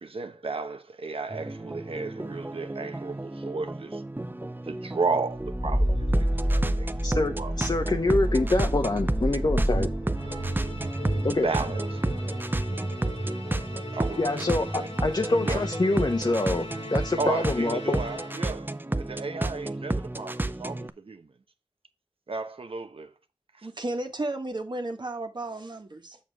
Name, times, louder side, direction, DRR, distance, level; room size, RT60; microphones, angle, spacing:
voice 1, 0.0-4.0 4.6-6.1 6.5-6.9 7.4-7.5 11.4-12.0 13.9-14.5 14.7-14.9 15.4-15.6 17.2-21.3 22.3-23.1 23.6-23.7, right 4 dB, 70° right, 1.1 m, -33 dB
sound 1, 1.3-20.9, right 2 dB, 20° right, 0.6 m, -32 dB
sound 2, 5.4-16.4, right 1 dB, ahead, 1.6 m, -30 dB
voice 2, 7.0-9.9 11.2-11.5 14.2-18.0, left 2 dB, 45° left, 1.0 m, -26 dB
Musical instrument, 10.1-18.7, left 2 dB, 90° left, 1.9 m, -42 dB
voice 3, 23.6-26.2, right 2 dB, 50° right, 1.7 m, -33 dB
7.1 x 6.6 x 3.5 m
wide cardioid pair, 50°, 10 cm